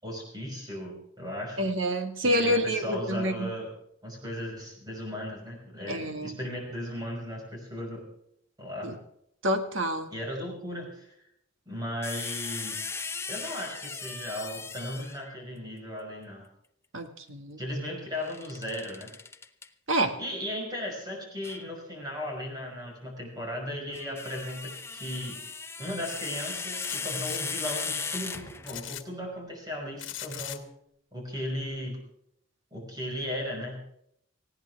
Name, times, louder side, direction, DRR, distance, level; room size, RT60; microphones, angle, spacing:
voice 1, 0.0-1.7 2.2-3.7 4.0-8.0 8.6-8.9 10.1-11.1 11.7-12.9 13.3-16.5 17.6-19.1 20.2-25.4 25.8-30.7 31.1-32.0 32.7-33.8, left 1 dB, 20° right, 0 dB, 5.7 m, -36 dB
voice 2, 1.6-3.5 5.9-6.4 8.8-8.9 9.4-10.1 16.9-17.6 19.9-20.1, equal, 80° right, 7 dB, 2.0 m, -27 dB
sound 1, 12.0-15.3 18.2-19.7 21.4-21.6 23.7-28.9, left 4 dB, 15° left, 0.7 m, -37 dB
sound 2, 26.8-27.4 28.6-29.0 30.0-30.6, left 12 dB, 75° left, 1.5 m, -39 dB
19.0 x 16.5 x 3.5 m, 0.74 s
head